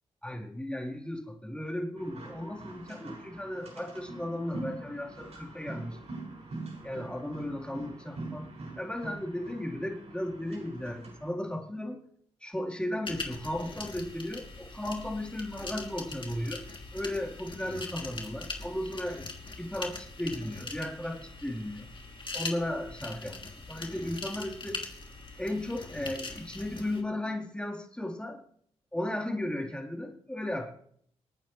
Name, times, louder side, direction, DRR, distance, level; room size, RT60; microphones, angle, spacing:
voice 1, 0.2-6.0 6.8-8.5 8.8-12.0 12.4-16.6 16.9-19.2 19.6-21.9 22.3-23.4 23.7-24.8 25.4-28.4 28.9-30.7, left 1 dB, 5° left, 0 dB, 4.0 m, -35 dB
sound 1, 2.0-11.3, right 2 dB, 50° right, 6.4 m, -44 dB
sound 2, 13.0-27.0, left 3 dB, 35° left, 3.0 m, -42 dB
27.0 x 9.1 x 3.3 m, 0.64 s
hypercardioid pair, 40°, 14 cm